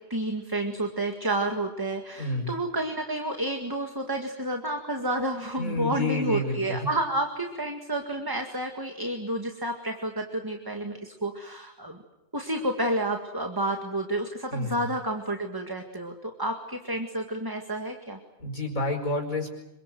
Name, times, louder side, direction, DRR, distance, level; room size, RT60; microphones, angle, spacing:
voice 1, 0.0-12.0 12.3-18.2, right 1 dB, 15° right, 4 dB, 2.0 m, -30 dB
voice 2, 2.2-2.5 5.6-6.8 14.5-14.9 18.4-19.5, left 2 dB, 80° left, 2 dB, 5.6 m, -29 dB
27.0 x 24.5 x 7.8 m, 0.95 s
omnidirectional pair, 1.4 m